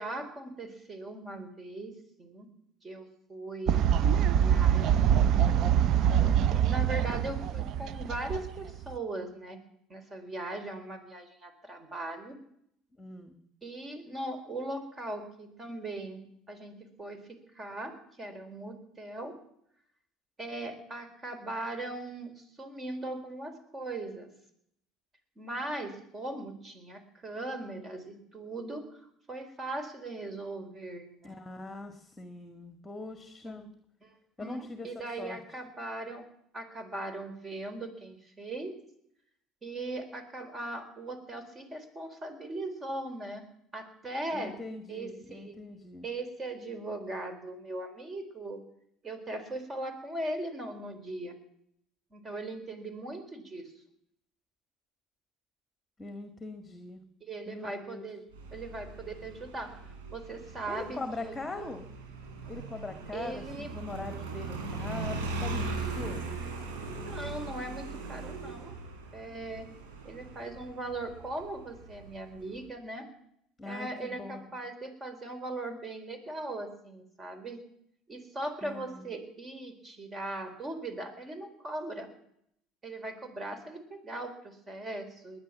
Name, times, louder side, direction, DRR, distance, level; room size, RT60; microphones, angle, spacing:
voice 1, 0.0-1.9 2.2-2.5 2.8-5.4 6.2-9.6 9.9-12.4 13.6-16.2 16.5-19.4 20.4-24.3 25.4-31.3 33.4-33.6 34.0-36.3 36.5-38.7 39.6-43.4 43.7-44.6 44.9-45.6 46.0-48.6 49.0-51.4 52.1-53.7 57.2-58.2 58.5-61.8 63.1-63.7 66.9-68.7 69.1-69.7 70.0-73.1 73.7-77.6 78.1-82.1 82.8-85.4, right 2 dB, 30° right, 9 dB, 3.9 m, -39 dB
Fowl, 3.7-8.9, right 9 dB, 60° right, 0.7 m, -24 dB
voice 2, 13.0-13.4 31.2-33.7 34.4-34.9 35.2-35.4 44.3-46.1 56.0-57.0 57.5-58.1 60.7-61.9 62.5-66.2 73.6-74.5 78.6-79.1, left 2 dB, 15° left, 7 dB, 1.9 m, -41 dB
Motorcycle, 58.3-72.6, right 3 dB, 90° right, 4.4 m, -40 dB
20.0 x 10.0 x 7.3 m, 0.73 s
supercardioid pair, 80°, 0 cm